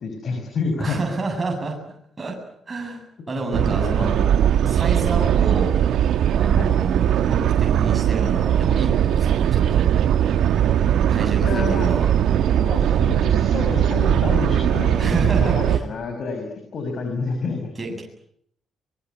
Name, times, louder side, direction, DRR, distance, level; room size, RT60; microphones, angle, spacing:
voice 1, 0.0-1.0 3.5-4.1 6.6-6.7 11.4-11.9 12.5-17.7, left 4 dB, 55° left, 5 dB, 6.7 m, -28 dB
voice 2, 0.8-1.8 2.2-2.4 2.7-3.0 3.3-4.3 4.6-5.7 6.3-9.9 11.1-12.1 15.0-15.8 17.8-18.0, right 3 dB, 25° right, 1 dB, 8.0 m, -29 dB
sound 1, 3.5-15.8, right 10 dB, 75° right, 1.6 m, -19 dB
24.0 x 23.0 x 9.8 m, 0.70 s
cardioid pair, 90°, 0 cm